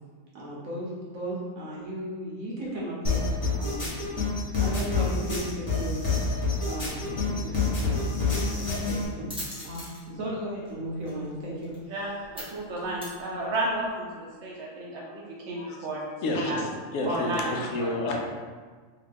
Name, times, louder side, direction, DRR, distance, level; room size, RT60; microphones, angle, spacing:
voice 1, 0.3-3.2 3.5-9.2 9.5-12.1, right 1 dB, 85° right, -6 dB, 1.5 m, -36 dB
sound 1, 3.0-9.0, left 3 dB, 30° left, 0.8 m, -27 dB
sound 2, 7.5-13.9, equal, 5° right, 0.7 m, -45 dB
voice 2, 11.9-16.7 17.0-17.5 17.8-18.0, right 1 dB, 65° right, -4 dB, 0.9 m, -32 dB
voice 3, 16.2-18.2, left 2 dB, 75° left, 1 dB, 0.9 m, -30 dB
3.4 x 2.4 x 3.4 m, 1.5 s
omnidirectional pair, 1.4 m